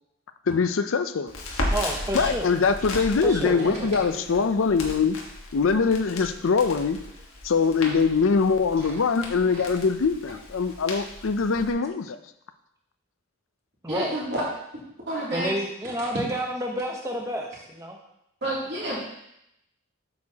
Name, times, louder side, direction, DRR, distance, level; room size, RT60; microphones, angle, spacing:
voice 1, 0.5-1.3 2.1-5.2 5.5-7.0 7.4-12.2, left 5 dB, 70° left, 10 dB, 0.5 m, -23 dB
Crackle, 1.3-11.7, left 1 dB, 90° left, 1.4 m, -36 dB
voice 2, 1.7-2.5 3.2-4.4 13.8-14.1 15.3-18.0, right 1 dB, 15° right, 1 dB, 0.9 m, -30 dB
voice 3, 13.9-14.4 15.1-15.5 18.4-19.0, right 1 dB, 50° right, -6 dB, 2.8 m, -29 dB
8.2 x 6.7 x 2.9 m, 0.81 s
head